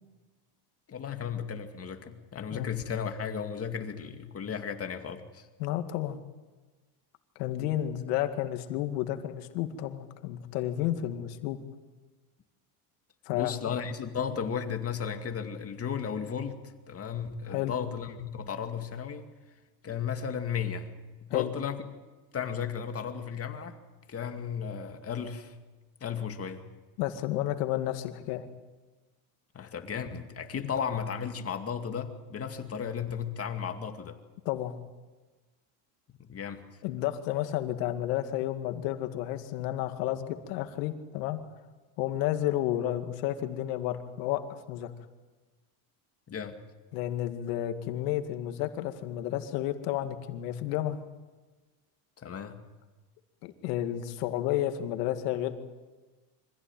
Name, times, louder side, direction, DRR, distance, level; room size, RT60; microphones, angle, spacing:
voice 1, 0.9-5.5 13.3-16.6 16.9-19.3 19.8-20.9 21.2-21.8 22.3-23.8 24.1-25.6 26.0-26.7 29.5-34.2 36.2-36.6 46.3-46.6 52.2-52.6, left 7 dB, 30° left, 6 dB, 2.4 m, -35 dB
voice 2, 5.6-6.2 7.4-11.6 13.3-13.5 17.5-17.8 21.3-21.5 27.0-28.4 34.5-34.7 36.8-41.4 42.0-44.4 44.7-44.9 46.9-51.0 53.4-55.5, left 13 dB, 80° left, 7 dB, 2.2 m, -31 dB
25.0 x 16.0 x 9.1 m, 1.3 s
supercardioid pair, 120°, 46 cm